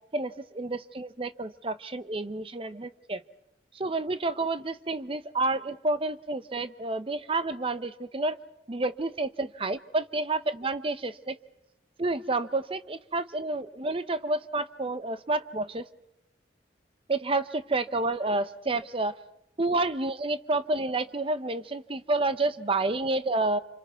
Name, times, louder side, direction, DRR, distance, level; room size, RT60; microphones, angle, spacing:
voice 1, 0.1-3.2 3.7-8.4 8.7-11.4 12.0-15.9 17.1-19.1 19.6-23.6, right 2 dB, 30° right, 12 dB, 0.7 m, -29 dB
26.5 x 26.5 x 4.7 m, 0.83 s
head